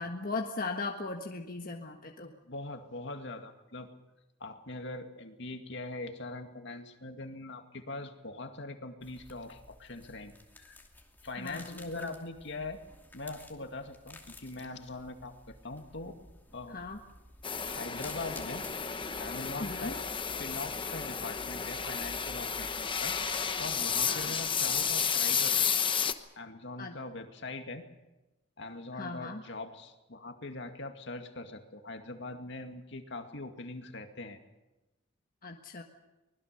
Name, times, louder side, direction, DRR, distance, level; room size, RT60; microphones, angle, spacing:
voice 1, 0.0-2.3 11.4-12.1 16.7-17.0 19.6-19.9 24.1-24.3 26.8-26.9 29.0-29.4 35.4-35.8, left 3 dB, 45° left, 2 dB, 1.5 m, -38 dB
voice 2, 2.5-3.9 4.4-10.8 11.2-12.8 13.1-16.2 16.5-16.8 17.5-18.6 19.2-20.0 20.3-23.2 23.6-25.7 26.0-27.9 28.6-34.4, left 2 dB, 65° left, 6 dB, 2.3 m, -42 dB
sound 1, 9.0-25.3, left 1 dB, 10° left, 2.7 m, -53 dB
sound 2, 17.4-26.1, left 7 dB, 25° left, 1.0 m, -32 dB
24.5 x 20.5 x 6.8 m, 1.0 s
head